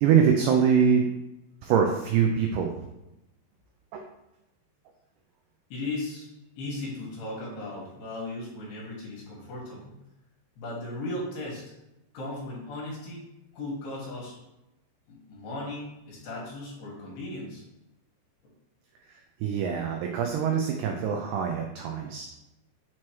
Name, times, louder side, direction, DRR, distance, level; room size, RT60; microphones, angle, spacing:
voice 1, 0.0-1.1 1.6-2.8 3.9-4.0 19.4-22.3, right 7 dB, 85° right, 2 dB, 2.3 m, -24 dB
voice 2, 5.7-6.3 6.6-9.9 10.6-11.6 12.1-13.2 13.5-14.4 15.1-17.6, left 2 dB, 70° left, -3 dB, 3.2 m, -36 dB
7.1 x 3.1 x 4.5 m, 0.94 s
omnidirectional pair, 5.2 m